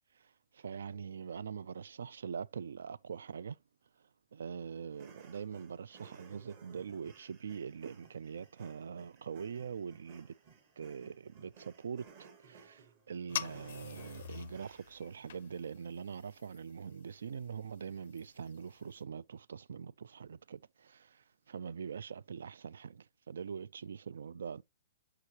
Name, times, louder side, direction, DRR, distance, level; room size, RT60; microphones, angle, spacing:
voice 1, 0.1-3.6 4.3-10.3 10.8-24.6, right 6 dB, 75° right, 0.3 m, -43 dB
sound 1, 4.9-15.1, right 5 dB, 25° right, 1.0 m, -59 dB
sound 2, 13.3-19.0, left 10 dB, 45° left, 0.4 m, -46 dB
6.3 x 5.7 x 2.8 m
hypercardioid pair, 180°, 0 cm